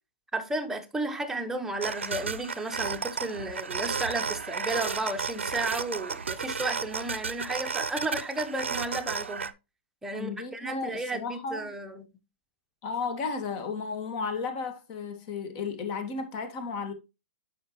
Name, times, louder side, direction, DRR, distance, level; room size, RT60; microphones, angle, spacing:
voice 1, 0.3-9.5 10.0-12.1, right 2 dB, 5° right, 0.9 m, -33 dB
sound 1, 1.8-9.5, right 5 dB, 90° right, 0.5 m, -33 dB
voice 2, 10.1-11.7 12.8-16.9, left 5 dB, 40° left, 1.7 m, -34 dB
8.5 x 5.6 x 3.0 m
hypercardioid pair, 125°, 6 cm